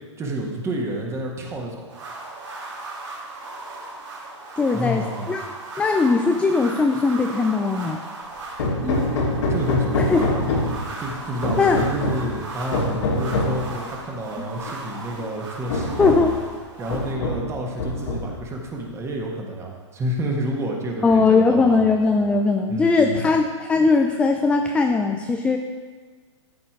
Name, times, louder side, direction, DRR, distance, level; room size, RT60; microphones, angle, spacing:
voice 1, 0.2-1.9 4.7-5.3 8.8-9.1 9.5-10.4 11.0-16.3 16.8-21.8 22.7-23.4, right 1 dB, 15° right, 0 dB, 1.5 m, -29 dB
sound 1, 1.9-17.1, right 2 dB, 75° right, 2.9 m, -37 dB
voice 2, 4.6-5.4 5.8-8.0 10.0-10.3 11.6-11.8 14.4-14.5 16.0-16.3 21.0-25.6, left 4 dB, 5° left, 4 dB, 0.3 m, -19 dB
Hammer, 8.6-10.9 11.4-12.3 12.7-13.6 14.7-14.8 15.2-15.3 15.7-16.4 16.9-17.5 17.8-18.5, left 2 dB, 65° left, 2.1 m, -24 dB
13.0 x 4.4 x 4.6 m, 1.5 s
hypercardioid pair, 120°, 16 cm